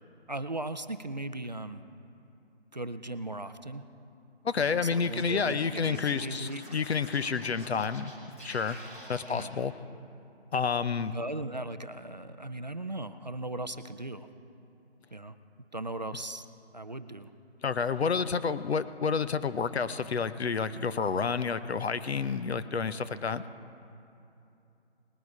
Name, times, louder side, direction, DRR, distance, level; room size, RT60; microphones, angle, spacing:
voice 1, 0.3-1.8 2.7-3.8 4.6-6.6 9.3-9.5 11.1-14.3 15.1-15.4 15.7-16.4 16.7-17.3, right 2 dB, 40° right, 10 dB, 0.4 m, -37 dB
voice 2, 4.4-8.1 8.4-8.8 9.1-9.7 10.5-11.1 17.6-23.4, left 5 dB, 70° left, 13 dB, 0.7 m, -29 dB
Scratching (performance technique), 4.9-9.4, right 1 dB, 15° left, 1.1 m, -48 dB
19.5 x 9.4 x 4.8 m, 2.7 s
figure-of-eight pair, 170°, 33 cm